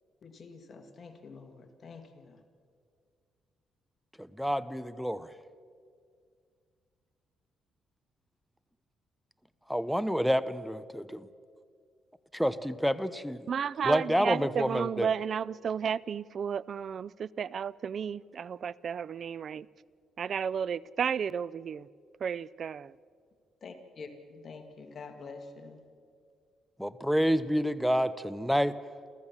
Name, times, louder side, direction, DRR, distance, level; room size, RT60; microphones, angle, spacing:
voice 1, 0.2-2.4 23.6-25.8, left 4 dB, 45° left, 2.0 m, -47 dB
voice 2, 4.2-5.3 9.7-11.3 12.3-13.5 13.8-15.1 26.8-28.7, equal, ahead, 0.7 m, -28 dB
voice 3, 13.5-19.7 20.2-21.9 22.2-22.9, right 7 dB, 55° right, 0.4 m, -33 dB
29.0 x 14.5 x 7.3 m
cardioid pair, 90°, 0 cm